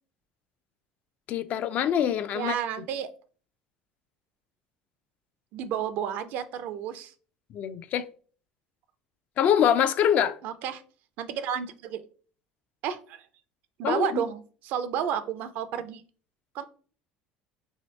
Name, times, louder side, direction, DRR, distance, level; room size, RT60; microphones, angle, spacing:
voice 1, 1.3-2.5 7.5-8.1 9.4-10.4 13.8-14.3, left 9 dB, 50° left, 0.3 m, -24 dB
voice 2, 2.3-3.1 5.5-7.1 10.4-10.8 11.2-12.1 12.8-13.3 13.8-16.0 16.5-16.6, right 9 dB, 65° right, 0.4 m, -31 dB
3.0 x 2.8 x 3.1 m
supercardioid pair, 90°, 3 cm